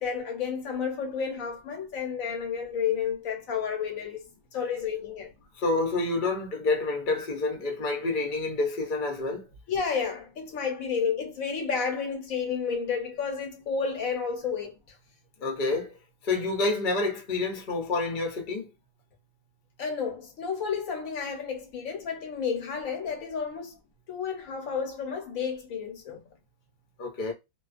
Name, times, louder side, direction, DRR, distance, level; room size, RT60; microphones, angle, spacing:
voice 1, 0.0-5.3 9.7-14.7 19.8-23.8 24.1-26.2, left 6 dB, 80° left, 1.2 m, -31 dB
voice 2, 5.5-9.5 15.4-18.7 27.0-27.3, left 3 dB, 45° left, 0.8 m, -28 dB
2.3 x 2.3 x 2.4 m
omnidirectional pair, 1.4 m